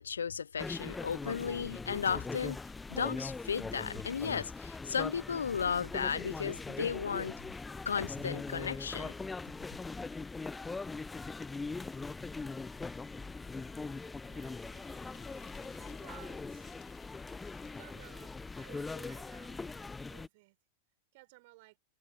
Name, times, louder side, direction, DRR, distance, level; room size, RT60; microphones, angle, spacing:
voice 1, 0.0-2.6 2.9-7.4 7.9-9.1, left 7 dB, 70° left, 0.5 m, -34 dB
sound 1, 0.6-20.3, left 3 dB, 10° left, 0.5 m, -41 dB
voice 2, 14.3-15.3 15.8-16.8 17.6-20.6 21.1-21.8, right 24 dB, 50° right, 4.1 m, -58 dB
sound 2, 14.7-18.7, left 16 dB, 35° left, 2.3 m, -61 dB
figure-of-eight pair, 90°, 0 cm